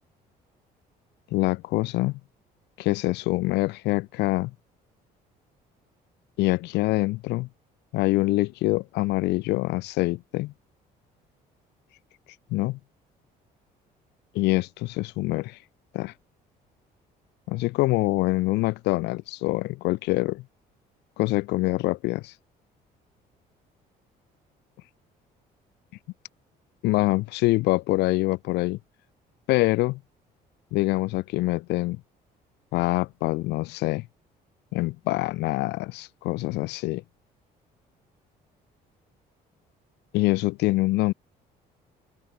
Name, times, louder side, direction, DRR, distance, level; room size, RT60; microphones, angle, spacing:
voice 1, 1.3-2.2 2.8-4.5 6.4-7.5 7.9-10.5 12.5-12.8 14.3-15.6 15.9-16.1 17.5-20.4 21.2-22.3 26.8-28.8 29.5-30.0 30.7-32.0 32.7-34.1 34.7-37.0 40.1-41.1, left 20 dB, 90° left, 3.1 m, -25 dB
open air
cardioid pair, 110°, 17 cm